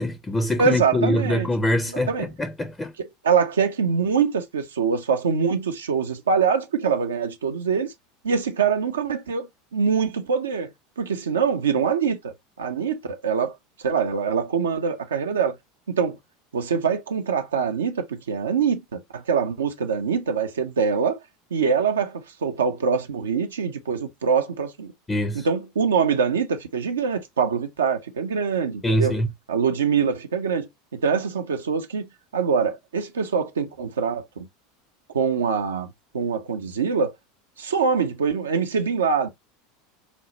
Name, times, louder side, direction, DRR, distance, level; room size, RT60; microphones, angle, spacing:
voice 1, 0.0-2.9 25.1-25.5 28.8-29.3, left 1 dB, 15° left, 0.5 m, -24 dB
voice 2, 0.6-1.5 2.1-2.2 3.0-7.9 8.2-10.7 11.0-13.5 13.8-15.6 15.9-16.2 16.5-21.2 21.5-24.9 25.3-29.2 29.5-32.1 32.3-34.5 35.1-37.1 37.6-39.3, right 6 dB, 75° right, 0.4 m, -24 dB
4.9 x 2.0 x 2.8 m
figure-of-eight pair, 80°, 0 cm